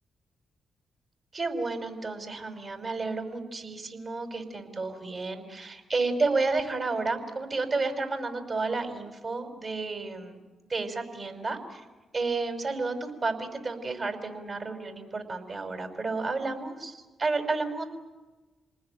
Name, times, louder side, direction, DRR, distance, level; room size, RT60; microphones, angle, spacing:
voice 1, 1.3-10.4 10.7-11.8 12.1-17.8, right 3 dB, 50° right, 6 dB, 5.7 m, -31 dB
28.0 x 20.0 x 9.4 m, 1.2 s
hypercardioid pair, 40°, 0 cm